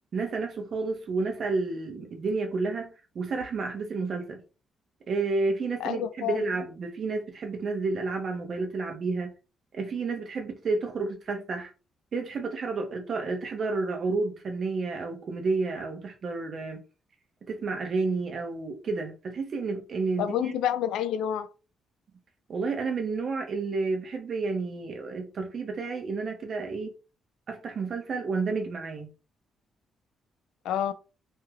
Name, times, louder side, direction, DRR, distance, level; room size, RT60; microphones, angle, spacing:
voice 1, 0.1-4.4 5.1-9.3 9.7-11.7 12.1-16.8 17.5-20.5 22.5-26.9 27.5-29.1, right 3 dB, 55° right, 0.9 m, -30 dB
voice 2, 5.8-6.4 20.2-21.5 30.6-30.9, left 10 dB, 85° left, 0.3 m, -28 dB
3.1 x 2.7 x 2.3 m
cardioid pair, 85°, 0 cm